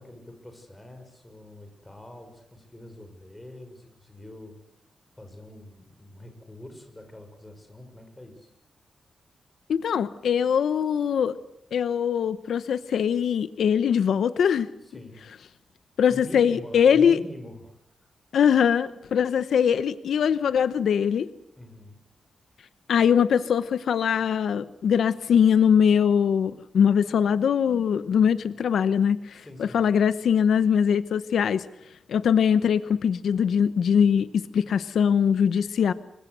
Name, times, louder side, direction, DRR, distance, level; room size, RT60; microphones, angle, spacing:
voice 1, 0.0-4.6 5.2-8.5 14.8-15.3 16.1-17.8 21.6-22.0 29.3-29.8, left 1 dB, 10° left, 5 dB, 6.1 m, -44 dB
voice 2, 9.7-11.4 11.7-14.7 16.0-17.2 18.3-21.3 22.9-31.7 32.1-35.9, left 7 dB, 80° left, 13 dB, 1.0 m, -22 dB
27.0 x 24.5 x 8.1 m, 0.77 s
wide cardioid pair, 160°, 0 cm